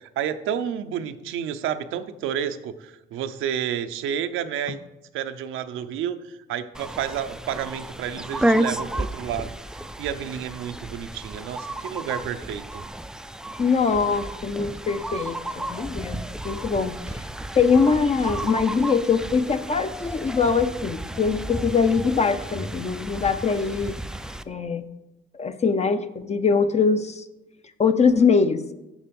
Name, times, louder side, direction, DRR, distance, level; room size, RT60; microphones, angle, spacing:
voice 1, 0.0-4.8 5.1-12.8, right 9 dB, 90° right, 10 dB, 0.6 m, -30 dB
sound 1, 6.7-24.4, right 1 dB, 5° right, 0.4 m, -32 dB
voice 2, 13.6-17.2 17.5-24.0 24.5-24.8 25.4-27.2 27.8-28.6, left 5 dB, 35° left, 10 dB, 0.6 m, -22 dB
7.2 x 6.6 x 5.3 m, 0.95 s
cardioid pair, 90°, 20 cm